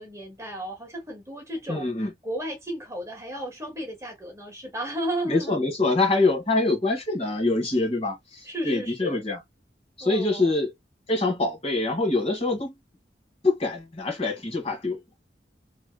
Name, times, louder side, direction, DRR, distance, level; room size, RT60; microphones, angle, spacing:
voice 1, 0.0-5.6 8.5-9.2 10.0-10.5, right 1 dB, 15° right, 1.3 m, -34 dB
voice 2, 1.7-2.1 5.3-9.4 10.0-10.7 11.1-12.7 13.4-15.1, left 2 dB, 35° left, 1.6 m, -25 dB
3.2 x 3.2 x 2.2 m
head